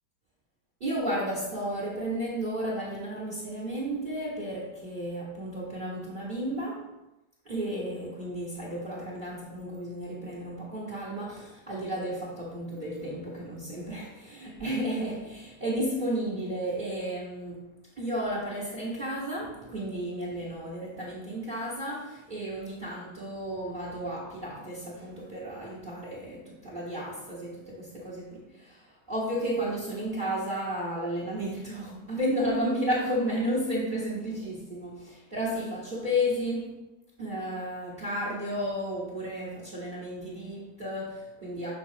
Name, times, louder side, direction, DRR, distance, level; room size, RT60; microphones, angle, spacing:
voice 1, 0.8-7.0 7.4-36.8 37.2-41.7, equal, 30° right, 1.4 m, -33 dB
6.3 x 5.9 x 2.8 m
omnidirectional pair, 1.9 m